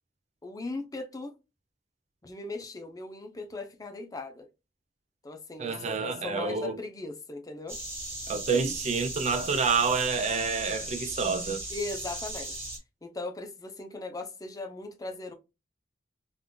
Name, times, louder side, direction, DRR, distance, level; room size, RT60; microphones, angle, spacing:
voice 1, 0.4-1.3 2.2-4.5 5.2-7.8 11.7-12.7 13.0-15.3, left 2 dB, 20° left, 0.5 m, -38 dB
voice 2, 5.6-6.8 8.3-11.6, right 5 dB, 35° right, 0.4 m, -28 dB
sound 1, 7.7-12.8, right 1 dB, 15° right, 1.4 m, -37 dB
3.6 x 2.4 x 2.2 m
head